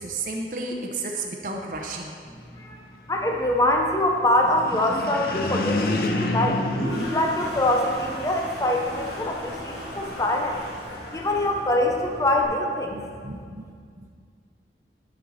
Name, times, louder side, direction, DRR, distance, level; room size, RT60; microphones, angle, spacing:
voice 1, 0.0-2.1 12.9-14.1, right 3 dB, 45° right, 1 dB, 0.8 m, -33 dB
voice 2, 3.1-6.6 7.1-10.6 11.1-13.0, left 1 dB, 20° left, 1 dB, 0.6 m, -24 dB
sound 1, 4.4-8.0, left 2 dB, 55° left, 0.7 m, -28 dB
Toilet flush, 6.3-12.4, left 1 dB, 80° left, 2.4 m, -35 dB
12.0 x 5.5 x 4.2 m, 2.1 s
head